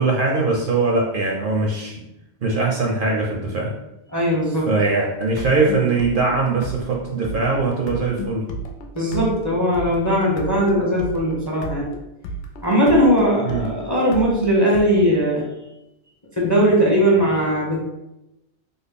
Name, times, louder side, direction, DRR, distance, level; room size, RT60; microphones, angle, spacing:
voice 1, 0.0-2.0 2.4-3.7 4.7-8.4 13.4-13.6, right 3 dB, 60° right, -1 dB, 0.7 m, -21 dB
voice 2, 4.1-4.7 8.9-11.9 12.6-15.4 16.4-17.8, equal, 20° left, -4 dB, 0.6 m, -19 dB
sound 1, 5.2-14.8, equal, 85° left, 0.9 m, -33 dB
3.6 x 2.1 x 3.6 m, 0.90 s
omnidirectional pair, 1.2 m